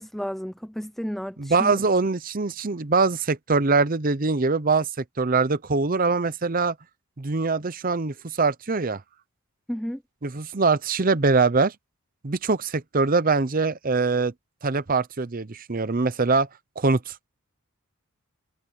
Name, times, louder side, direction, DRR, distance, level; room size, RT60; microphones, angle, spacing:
voice 1, 0.0-1.8 9.7-10.0, equal, ahead, 0.3 m, -32 dB
voice 2, 1.4-4.9 5.2-6.7 7.2-9.0 10.2-11.7 12.2-14.3 14.6-16.5 16.8-17.1, right 4 dB, 40° right, 0.7 m, -23 dB
head